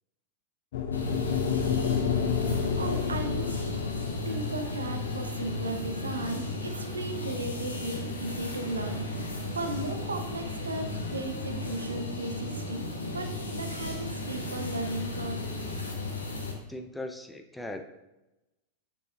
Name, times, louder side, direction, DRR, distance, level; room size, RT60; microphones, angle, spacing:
sound 1, 0.7-9.0, left 7 dB, 55° left, 0.5 m, -31 dB
sound 2, 0.9-16.5, left 1 dB, 75° left, 0.8 m, -35 dB
voice 1, 2.5-3.6 4.3-9.1 9.5-12.9 13.1-15.4, right 2 dB, 75° right, 6 dB, 0.6 m, -36 dB
voice 2, 16.7-17.8, left 1 dB, 5° left, 5 dB, 0.5 m, -38 dB
6.7 x 6.2 x 2.3 m, 0.99 s
figure-of-eight pair, 90°, 0 cm